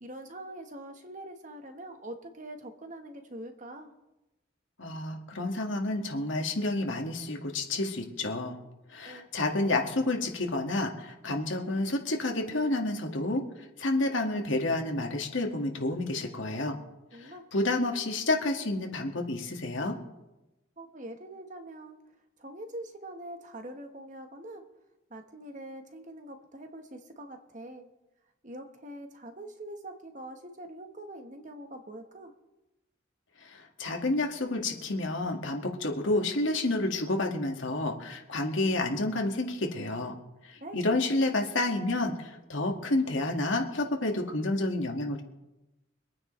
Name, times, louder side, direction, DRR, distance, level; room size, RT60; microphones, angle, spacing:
voice 1, 0.0-3.9 9.0-9.3 17.1-17.5 20.8-22.0 22.4-24.7 25.1-27.9 28.4-32.3 40.6-40.9, right 1 dB, 40° right, 6 dB, 1.3 m, -44 dB
voice 2, 4.8-8.6 8.9-13.4 13.8-16.8 17.2-20.0 33.4-40.1 40.4-45.2, left 2 dB, 80° left, 2 dB, 1.9 m, -30 dB
25.0 x 9.5 x 3.3 m, 0.98 s
head